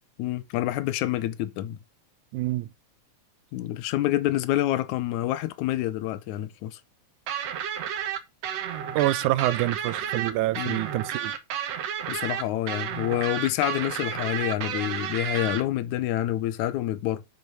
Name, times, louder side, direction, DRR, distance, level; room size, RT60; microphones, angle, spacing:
voice 1, 0.2-1.8 3.5-6.8 10.6-10.8 12.1-17.2, left 14 dB, 75° left, 2.1 m, -27 dB
voice 2, 2.3-2.7 9.0-11.3, right 15 dB, 80° right, 2.0 m, -26 dB
sound 1, 7.3-15.6, right 9 dB, 65° right, 2.0 m, -31 dB
7.6 x 5.2 x 6.7 m
omnidirectional pair, 3.6 m